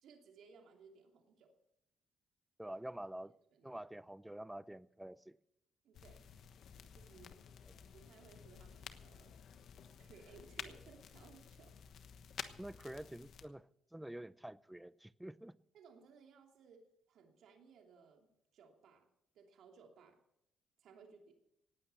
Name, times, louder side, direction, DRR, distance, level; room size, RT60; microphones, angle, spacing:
voice 1, 0.0-1.5 3.2-3.7 5.8-6.3 6.9-7.4 7.9-9.4 10.0-11.8 15.7-18.3 18.5-19.1 19.3-20.2 20.8-21.4, right 5 dB, 75° right, 2.8 m, -61 dB
voice 2, 2.6-3.3 3.6-5.4 12.6-15.6, right 1 dB, 5° right, 0.5 m, -48 dB
sound 1, 5.9-13.5, left 8 dB, 65° left, 1.2 m, -52 dB
18.0 x 8.9 x 6.8 m
cardioid pair, 90°, 0 cm